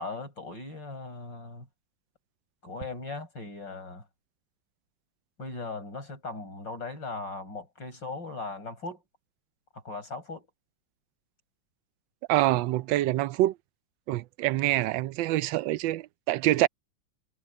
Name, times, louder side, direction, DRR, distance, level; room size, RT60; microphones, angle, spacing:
voice 1, 0.0-1.7 2.6-4.0 5.4-9.0 9.7-10.5, left 3 dB, 75° left, 7.9 m, -38 dB
voice 2, 12.3-13.5 14.1-16.7, right 15 dB, 85° right, 1.3 m, -25 dB
omnidirectional pair, 2.0 m